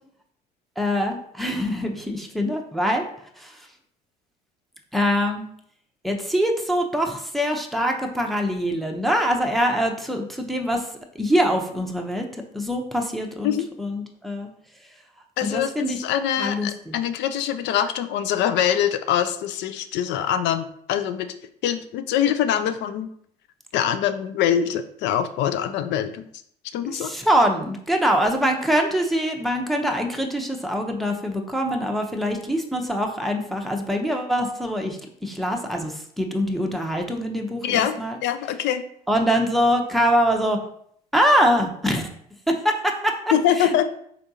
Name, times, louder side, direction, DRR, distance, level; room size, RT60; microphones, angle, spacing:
voice 1, 0.8-3.1 3.4-3.7 4.9-5.4 6.0-10.9 11.1-14.5 15.4-16.0 16.4-16.9 26.8-38.2 39.1-40.6 41.1-42.1 42.5-43.1 43.6-43.8, equal, ahead, 2 dB, 0.7 m, -24 dB
voice 2, 15.4-21.3 21.6-23.1 23.7-26.3 26.7-27.1 37.6-37.9 38.2-38.8 43.3-43.8, left 10 dB, 60° left, 10 dB, 0.4 m, -24 dB
3.8 x 3.3 x 2.7 m, 0.65 s
hypercardioid pair, 60°, 21 cm